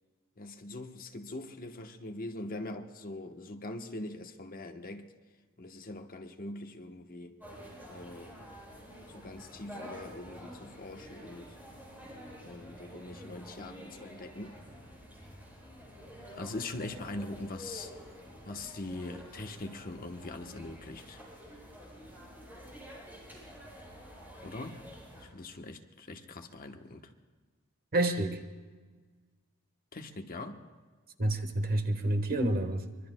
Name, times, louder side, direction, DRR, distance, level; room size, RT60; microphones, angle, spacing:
voice 1, 0.4-5.1 5.6-7.4 7.9-8.3 9.1-11.6 12.4-14.6 16.3-17.9 18.4-21.2 24.4-24.8 25.2-27.1 29.9-30.6, left 2 dB, 40° left, 5 dB, 1.0 m, -42 dB
sound 1, 7.4-25.2, equal, 10° right, 6.6 m, -49 dB
voice 2, 27.9-28.4 31.2-32.8, right 1 dB, 45° right, 5 dB, 1.3 m, -28 dB
24.5 x 23.0 x 2.2 m, 1.4 s
head